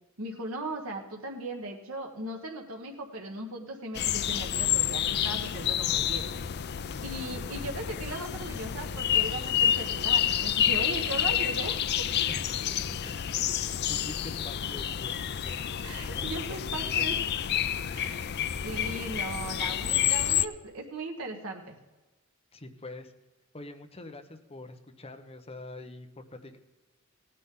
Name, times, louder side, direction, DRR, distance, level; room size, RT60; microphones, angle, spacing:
voice 1, 0.2-6.2 7.0-12.1 15.8-17.2 17.9-18.3 18.6-21.8, right 2 dB, 75° right, 1 dB, 1.5 m, -38 dB
sound 1, 3.9-20.5, left 10 dB, 50° left, 0.5 m, -29 dB
voice 2, 12.3-13.0 13.9-15.6 16.1-17.1 22.5-23.1 23.5-26.6, left 2 dB, 30° left, 5 dB, 1.1 m, -45 dB
17.0 x 9.9 x 3.8 m, 1.2 s
head